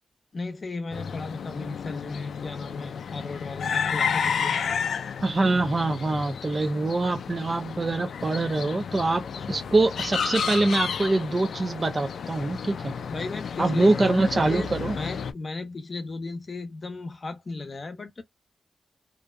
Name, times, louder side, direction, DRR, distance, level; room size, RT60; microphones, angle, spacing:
voice 1, 0.3-4.6 13.1-14.1 14.5-14.7 14.9-18.2, left 3 dB, 45° left, 0.6 m, -35 dB
sound 1, 0.9-15.3, left 6 dB, 80° left, 0.3 m, -32 dB
voice 2, 5.2-9.2 9.5-12.9 13.6-15.0, right 2 dB, 35° right, 0.4 m, -24 dB
2.5 x 2.1 x 2.3 m
wide cardioid pair, 95°, 0 cm